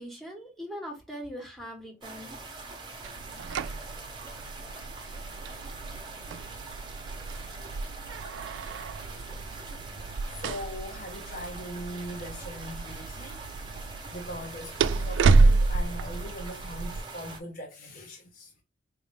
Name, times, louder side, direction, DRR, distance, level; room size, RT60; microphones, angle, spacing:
voice 1, 0.0-2.4, equal, ahead, 1.2 m, -41 dB
sound 1, 2.0-17.4, right 3 dB, 25° right, 0.9 m, -43 dB
sound 2, 3.0-17.0, right 3 dB, 80° right, 0.3 m, -29 dB
voice 2, 10.0-13.5 14.1-18.5, equal, 45° left, 0.6 m, -41 dB
4.2 x 2.6 x 3.3 m
head